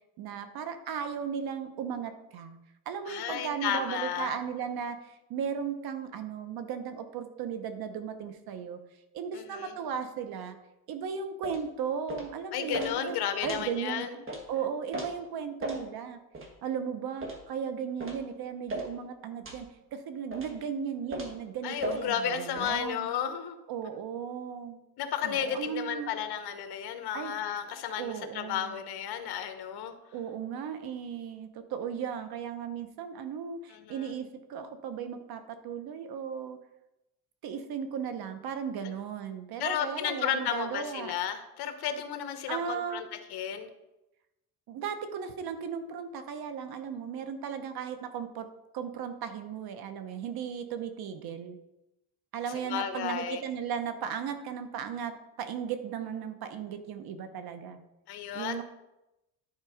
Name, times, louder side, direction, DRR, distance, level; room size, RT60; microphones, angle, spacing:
voice 1, 0.2-2.6 2.9-8.8 9.1-10.6 10.9-13.2 13.4-14.1 14.5-16.2 16.6-23.1 23.7-24.8 25.2-26.2 27.1-27.3 28.0-28.8 30.1-36.6 37.4-41.1 42.5-43.1 44.7-48.5 48.7-51.6 52.3-57.8 58.3-58.6, right 7 dB, 65° right, 9 dB, 1.0 m, -36 dB
voice 2, 3.1-4.3 9.3-9.8 12.5-14.2 21.6-23.6 25.0-29.9 33.7-34.1 39.6-43.7 52.7-53.4 58.1-58.6, left 9 dB, 70° left, 8 dB, 1.1 m, -33 dB
sound 1, 11.4-11.6 12.1-12.3 12.7-12.9 13.4-13.6 14.3-14.4 14.9-15.1 15.6-15.8 16.3-16.5 17.2-17.4 18.0-18.2 18.7-18.9 19.4-19.6 20.3-20.6 21.1-21.4 21.8-22.0 22.6-22.8, right 1 dB, 30° right, 1.7 m, -36 dB
10.5 x 4.5 x 5.1 m, 0.95 s
cardioid pair, 130°, 40 cm